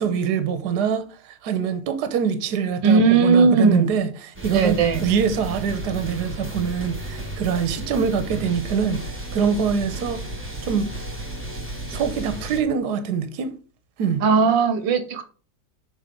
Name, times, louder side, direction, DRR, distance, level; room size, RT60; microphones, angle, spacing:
voice 1, 0.0-9.0 9.3-10.2 10.6-10.9 11.9-13.5 14.0-14.2, right 7 dB, 65° right, 1.4 m, -24 dB
voice 2, 2.8-3.9 4.5-5.0 14.2-15.2, right 5 dB, 85° right, 1.6 m, -17 dB
sound 1, 4.3-12.6, right 1 dB, 5° right, 1.7 m, -33 dB
6.7 x 4.5 x 5.2 m
omnidirectional pair, 2.0 m